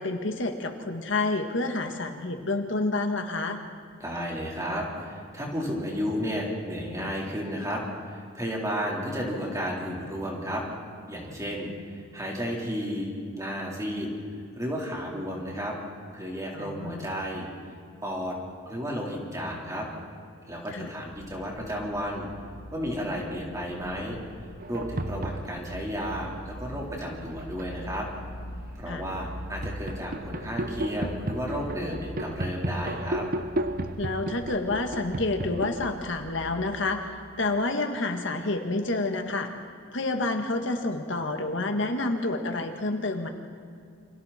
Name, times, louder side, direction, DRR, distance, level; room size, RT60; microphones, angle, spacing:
voice 1, 0.0-3.6 16.5-17.1 20.7-20.9 28.9-29.0 34.0-39.5 39.9-43.3, left 2 dB, 60° left, 5 dB, 1.7 m, -29 dB
voice 2, 4.0-10.6 11.1-14.1 14.6-15.8 16.1-17.5 18.0-18.4 18.7-19.9 20.5-22.3 22.7-24.2 24.7-28.1 28.8-33.3, equal, 15° right, -2 dB, 4.1 m, -32 dB
sound 1, 21.1-36.3, equal, 85° left, 1.5 m, -43 dB
sound 2, 24.6-25.8 26.8-27.9 28.4-35.9, right 1 dB, 45° right, 0.9 m, -34 dB
29.0 x 26.0 x 4.4 m, 2.3 s
head